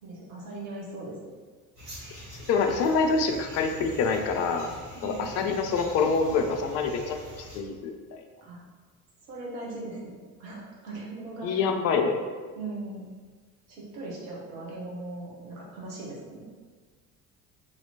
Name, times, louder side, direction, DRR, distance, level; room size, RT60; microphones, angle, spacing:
voice 1, 0.0-1.2 4.9-5.3 8.4-8.6 9.3-10.1 10.4-11.6 12.5-13.0 13.7-16.4, right 2 dB, 65° right, -4 dB, 1.2 m, -39 dB
sound 1, 1.8-7.6, equal, 80° right, 1.3 m, -45 dB
voice 2, 2.5-4.7 5.0-8.2 11.4-12.2, left 4 dB, 35° left, 5 dB, 0.4 m, -26 dB
3.0 x 2.8 x 4.1 m, 1.5 s
figure-of-eight pair, 55°, 46 cm